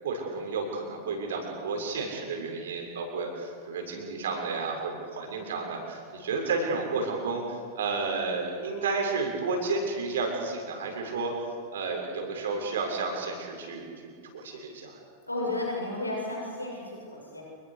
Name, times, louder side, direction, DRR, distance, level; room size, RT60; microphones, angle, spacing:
voice 1, 0.0-7.4 7.8-11.3 11.7-13.9 14.3-15.0, right 4 dB, 60° right, 1 dB, 6.9 m, -31 dB
voice 2, 15.2-17.4, left 2 dB, 85° left, -1 dB, 7.5 m, -33 dB
29.0 x 22.0 x 6.9 m, 2.1 s
figure-of-eight pair, 90°, 0 cm